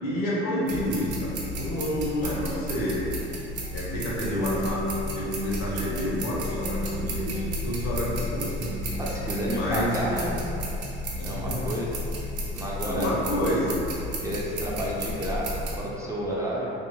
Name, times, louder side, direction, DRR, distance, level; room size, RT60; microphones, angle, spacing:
voice 1, 0.0-3.1 3.7-4.8 5.1-8.7 9.5-10.0 11.2-11.7 12.8-13.8, equal, 85° left, -7 dB, 0.9 m, -29 dB
sound 1, 0.7-15.8, equal, 60° right, 0.6 m, -33 dB
sound 2, 4.4-12.2, left 1 dB, 70° left, 0.5 m, -37 dB
voice 2, 9.0-10.3 11.2-12.0 12.5-13.1 14.2-16.7, equal, 15° right, -6 dB, 0.4 m, -31 dB
2.6 x 2.1 x 2.9 m, 2.8 s
cardioid pair, 110°, 21 cm